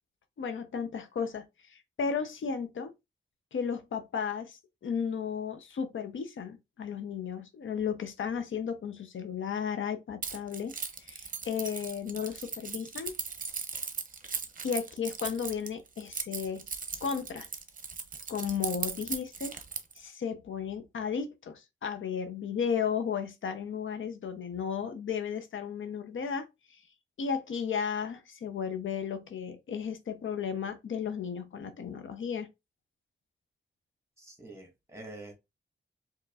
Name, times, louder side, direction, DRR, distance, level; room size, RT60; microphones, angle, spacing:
voice 1, 0.4-2.9 3.5-10.7 11.0-13.1 14.6-16.6 17.0-17.5 18.3-19.6 20.0-26.5 27.2-32.5, left 7 dB, 80° left, 0.7 m, -34 dB
Keys jangling, 10.2-20.0, right 5 dB, 45° right, 0.7 m, -38 dB
voice 2, 34.2-35.3, right 2 dB, 15° right, 1.6 m, -46 dB
4.7 x 2.9 x 2.4 m
wide cardioid pair, 115°, 20 cm